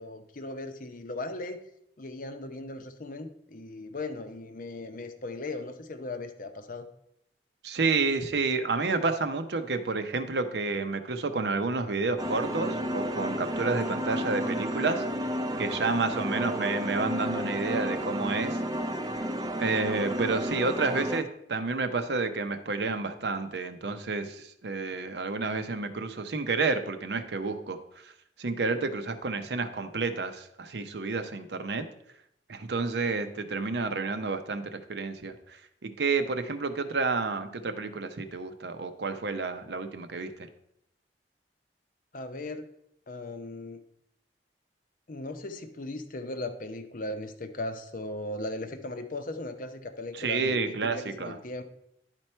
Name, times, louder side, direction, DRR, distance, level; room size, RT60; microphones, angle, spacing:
voice 1, 0.0-1.6 2.0-6.9 42.1-42.7 43.1-43.8 45.1-51.6, left 2 dB, 50° left, 8 dB, 0.7 m, -38 dB
voice 2, 7.6-15.0 15.6-18.6 19.6-27.8 28.0-28.1 28.4-31.9 32.5-40.5 50.1-51.4, right 3 dB, 70° right, 8 dB, 0.7 m, -30 dB
sound 1, 12.2-21.2, equal, 20° right, 0.4 m, -32 dB
10.5 x 4.5 x 4.4 m, 0.75 s
head